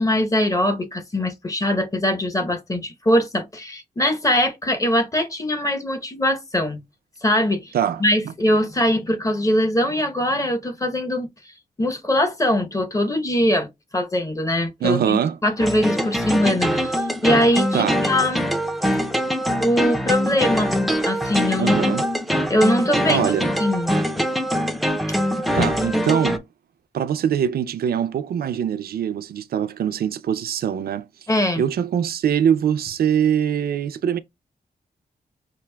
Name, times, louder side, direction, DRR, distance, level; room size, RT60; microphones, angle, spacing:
voice 1, 0.0-6.8 7.2-7.7 8.0-11.3 11.8-18.4 19.6-20.8 21.0-22.0 22.5-23.3 23.6-24.2 25.1-25.2 25.5-25.7 31.3-31.6, left 1 dB, 20° left, 0.8 m, -22 dB
voice 2, 14.8-15.4 17.7-18.0 21.6-22.0 23.1-23.5 25.5-26.4 26.9-31.1 31.6-34.2, right 9 dB, 80° right, 0.4 m, -23 dB
sound 1, 15.6-26.4, equal, ahead, 0.4 m, -23 dB
5.9 x 2.4 x 2.2 m
wide cardioid pair, 115°, 16 cm